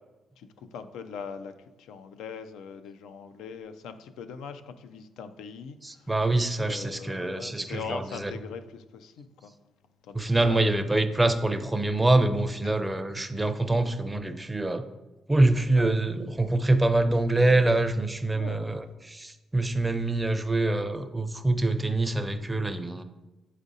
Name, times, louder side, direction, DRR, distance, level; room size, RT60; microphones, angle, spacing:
voice 1, 0.4-1.5 1.8-6.1 6.6-9.5 10.0-10.8 12.6-12.7 15.8-15.9 18.3-18.6, left 6 dB, 90° left, 0.4 m, -41 dB
voice 2, 5.8-8.3 10.1-14.8 15.3-23.0, right 2 dB, 15° right, 0.5 m, -25 dB
7.2 x 4.9 x 2.6 m
cardioid pair, 90°, 0 cm